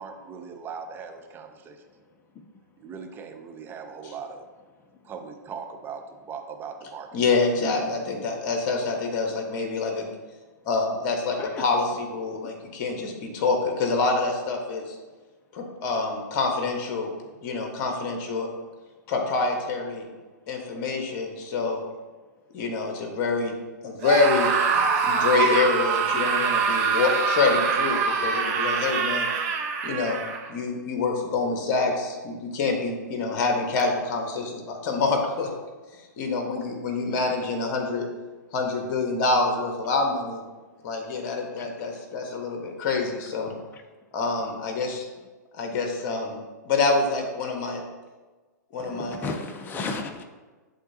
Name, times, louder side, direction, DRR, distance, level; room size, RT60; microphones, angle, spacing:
voice 1, 0.0-1.8 2.8-4.5 5.0-7.1, right 6 dB, 20° right, 5 dB, 0.7 m, -39 dB
voice 2, 2.1-2.4 4.8-4.9 11.4-11.7 33.3-33.4 41.6-41.7 43.7-43.8 48.8-50.2, left 3 dB, 20° left, 5 dB, 0.6 m, -35 dB
voice 3, 7.1-10.1 10.6-15.0 15.5-17.1 17.4-18.5 19.1-20.0 20.5-21.8 22.5-23.6 23.8-29.3 29.8-30.2 30.5-35.5 36.2-38.1 38.5-40.4 40.8-43.5 44.1-45.1 45.5-46.4 46.6-47.8 48.7-49.3, left 3 dB, 45° left, 2 dB, 1.5 m, -26 dB
Screaming, 24.0-30.5, right 5 dB, 50° right, 1.0 m, -24 dB
11.0 x 3.7 x 2.8 m, 1.3 s
hypercardioid pair, 115°, 10 cm